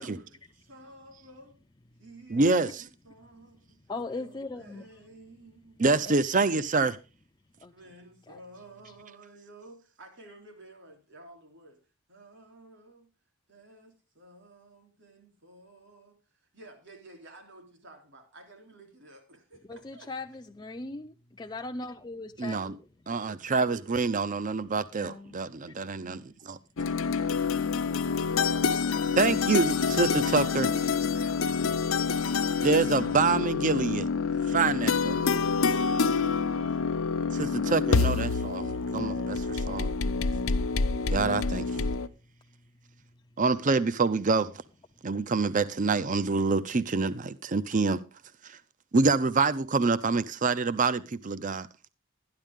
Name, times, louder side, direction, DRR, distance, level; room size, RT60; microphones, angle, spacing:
voice 1, 0.0-1.6 2.0-3.8 4.2-5.8 7.7-11.8 12.1-13.1 13.5-16.1 16.5-20.1 23.7-24.1 30.2-31.6, right 2 dB, 60° right, 3.4 m, -52 dB
voice 2, 2.3-2.8 5.8-7.0 22.4-22.7 23.1-25.5 25.8-26.2 26.5-26.6 29.2-30.7 32.6-34.1 34.5-35.3 37.3-39.9 41.1-41.9 43.4-44.5 45.0-48.0 48.4-48.6 48.9-51.7, right 4 dB, 40° right, 0.6 m, -26 dB
voice 3, 3.9-4.9 7.6-7.7 8.3-8.4 19.7-22.9 25.0-25.3 28.4-29.1, left 3 dB, 20° left, 0.5 m, -39 dB
sound 1, 26.8-42.1, left 5 dB, 70° left, 0.7 m, -27 dB
13.0 x 10.5 x 3.6 m
head